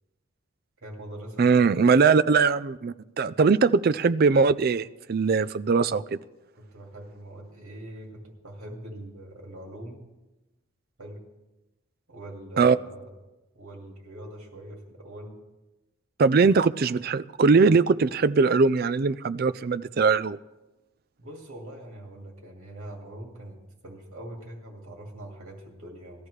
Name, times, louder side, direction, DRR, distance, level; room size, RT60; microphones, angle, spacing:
voice 1, 0.8-1.8 6.5-10.0 11.0-11.2 12.1-13.1 13.5-15.4 21.2-26.3, right 1 dB, 75° right, 0 dB, 2.3 m, -42 dB
voice 2, 1.4-6.2 12.6-12.8 16.2-20.4, right 4 dB, 45° right, 13 dB, 0.4 m, -21 dB
19.0 x 13.5 x 3.2 m, 1.0 s
head